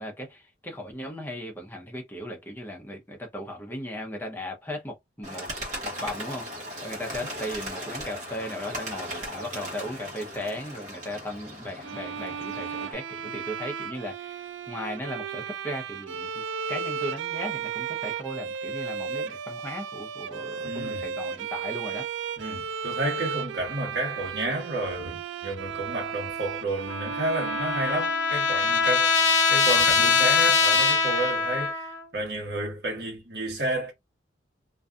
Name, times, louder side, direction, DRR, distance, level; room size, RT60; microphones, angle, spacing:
voice 1, 0.0-5.5 5.8-16.4 16.7-22.1, equal, 10° left, 0.6 m, -37 dB
Bird, 5.2-12.9, equal, 40° right, 1.1 m, -37 dB
Bowed string instrument, 11.8-28.8, right 6 dB, 85° right, 0.4 m, -34 dB
voice 2, 20.6-21.1 22.4-31.9 32.1-33.9, right 1 dB, 60° right, 1.3 m, -31 dB
Trumpet, 26.9-32.0, left 4 dB, 65° left, 0.7 m, -23 dB
2.6 x 2.3 x 2.3 m
head